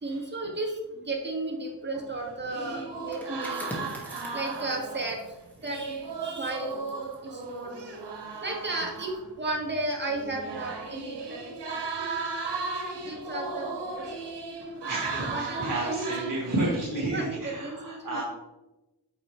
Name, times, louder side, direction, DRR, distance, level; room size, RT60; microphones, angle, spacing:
voice 1, 0.0-3.7 4.3-5.2 5.6-5.9 6.2-6.7 7.2-7.7 8.4-12.2 13.0-14.1 15.1-16.3 17.0-18.2, right 2 dB, 25° right, -1 dB, 1.9 m, -34 dB
sound 1, 1.9-5.3 5.6-9.3 10.0-16.8, right 4 dB, 85° right, 1.1 m, -36 dB
sound 2, 3.0-8.5 8.8-9.1, equal, 5° left, 2.0 m, -44 dB
voice 2, 14.8-18.2, right 2 dB, 50° right, -3 dB, 1.7 m, -31 dB
8.2 x 5.3 x 3.3 m, 1.0 s
wide cardioid pair, 65°, 41 cm